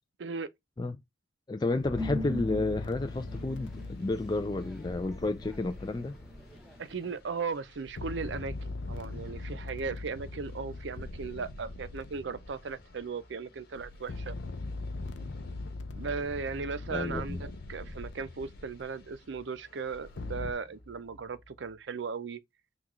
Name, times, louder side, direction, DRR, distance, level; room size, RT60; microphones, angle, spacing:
voice 1, 0.2-0.5 6.8-14.4 15.9-22.4, right 5 dB, 70° right, 0.5 m, -37 dB
voice 2, 1.5-6.1 16.9-17.4, left 2 dB, 20° left, 0.3 m, -31 dB
sound 1, 1.7-6.9 7.7-13.1 13.8-19.2 19.9-20.5, left 2 dB, 75° left, 0.6 m, -41 dB
sound 2, 2.0-7.2, left 2 dB, ahead, 0.8 m, -42 dB
sound 3, 3.0-22.1, left 1 dB, 50° left, 1.4 m, -60 dB
5.8 x 2.4 x 3.0 m
head